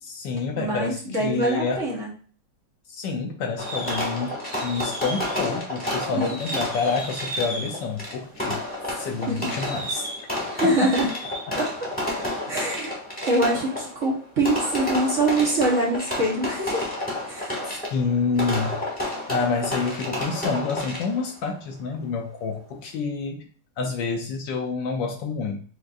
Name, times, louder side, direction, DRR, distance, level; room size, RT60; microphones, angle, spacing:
voice 1, 0.0-1.8 2.9-4.4 4.6-8.6 8.9-10.1 10.6-10.9 17.9-18.8 19.3-23.5 23.8-25.6, left 4 dB, 75° left, 2 dB, 1.2 m, -28 dB
voice 2, 0.6-2.1 6.1-6.2 9.3-9.5 10.5-11.1 11.5-11.9 12.5-13.0 13.2-16.9 17.3-17.6, right 1 dB, 45° right, -4 dB, 1.3 m, -24 dB
Fireworks, 3.6-21.3, left 1 dB, 5° left, 1.4 m, -30 dB
5.1 x 3.9 x 2.4 m, 0.41 s
omnidirectional pair, 2.2 m